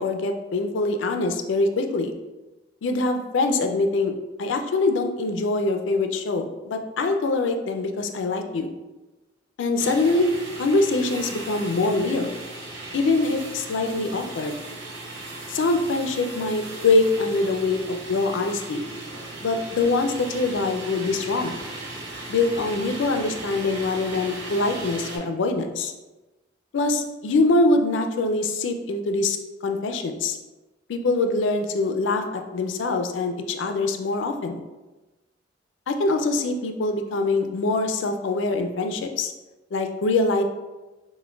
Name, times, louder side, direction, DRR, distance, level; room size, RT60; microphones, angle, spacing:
voice 1, 0.0-2.1 2.8-4.1 4.4-8.7 9.6-10.3 10.6-12.3 12.9-14.5 15.5-18.8 19.4-21.6 22.3-25.9 26.7-29.4 29.6-30.4 30.9-34.6 35.9-39.3 39.7-40.4, left 3 dB, 70° left, 6 dB, 0.4 m, -24 dB
sound 1, 9.8-25.2, right 2 dB, 70° right, 1.1 m, -37 dB
5.8 x 2.1 x 2.3 m, 1.1 s
head